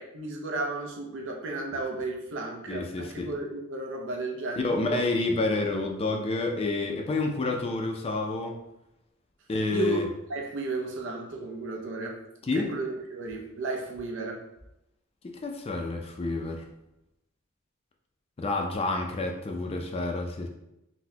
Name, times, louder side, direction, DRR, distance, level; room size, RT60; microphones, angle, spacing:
voice 1, 0.0-5.0 9.7-12.2 12.5-14.4, right 3 dB, 60° right, 2 dB, 0.6 m, -34 dB
voice 2, 2.7-3.3 4.6-8.6 9.5-10.1 12.4-12.7 15.2-16.6 18.4-20.5, left 2 dB, 30° left, 3 dB, 0.4 m, -29 dB
4.0 x 2.1 x 2.7 m, 0.86 s
head